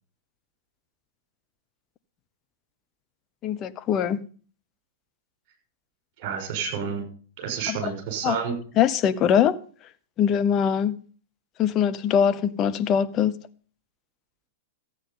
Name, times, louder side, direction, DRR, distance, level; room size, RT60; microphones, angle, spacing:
voice 1, 3.4-4.2 7.7-7.8 8.2-8.4 8.8-9.6 10.2-11.0 11.6-13.4, left 8 dB, 35° left, 0.8 m, -22 dB
voice 2, 6.2-7.0 7.4-8.5, right 6 dB, 45° right, 6.1 m, -29 dB
14.0 x 8.9 x 5.4 m
figure-of-eight pair, 100°, 0 cm